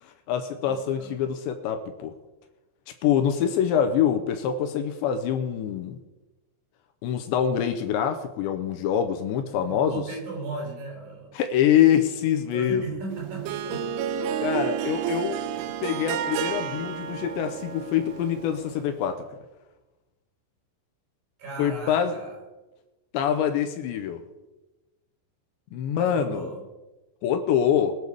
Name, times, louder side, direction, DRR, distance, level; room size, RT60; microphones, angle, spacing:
voice 1, 0.0-2.1 3.0-6.0 7.0-10.0 11.3-12.8 14.4-15.4 15.8-19.3 21.6-22.1 23.1-24.2 25.7-26.5 27.2-28.0, left 9 dB, 80° left, 8 dB, 3.0 m, -25 dB
voice 2, 0.6-1.1 9.6-11.3 12.5-13.9 21.4-22.4 26.0-26.6, right 3 dB, 50° right, -1 dB, 6.7 m, -37 dB
Harp, 13.1-18.9, right 9 dB, 90° right, 3.3 m, -31 dB
21.0 x 8.0 x 6.9 m, 1.1 s
omnidirectional pair, 5.4 m